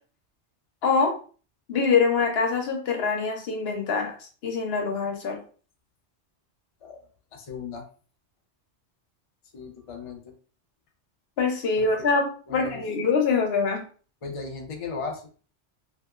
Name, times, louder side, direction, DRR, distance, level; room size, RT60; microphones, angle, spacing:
voice 1, 0.8-1.1 1.7-4.1 4.4-5.4 11.4-13.8, left 5 dB, 65° left, 3 dB, 0.9 m, -24 dB
voice 2, 6.8-7.8 9.5-10.3 11.8-11.9 12.5-12.8 14.2-15.2, left 4 dB, 45° left, 2 dB, 0.4 m, -37 dB
2.9 x 2.8 x 2.3 m, 0.39 s
omnidirectional pair, 1.2 m